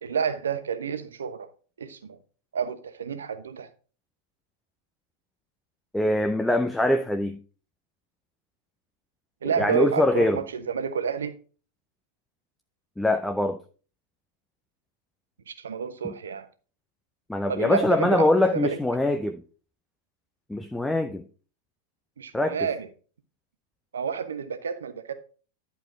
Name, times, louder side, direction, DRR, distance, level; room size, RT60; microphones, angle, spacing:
voice 1, 0.0-1.5 1.8-2.2 2.5-3.7 9.4-11.4 15.5-16.5 17.5-18.8 22.2-22.9 23.9-25.1, right 7 dB, 70° right, 0.9 m, -29 dB
voice 2, 5.9-7.4 9.6-10.4 13.0-13.6 17.3-19.4 20.5-21.2 22.3-22.6, left 1 dB, 5° left, 0.6 m, -23 dB
11.0 x 4.6 x 4.7 m
figure-of-eight pair, 90°, 0 cm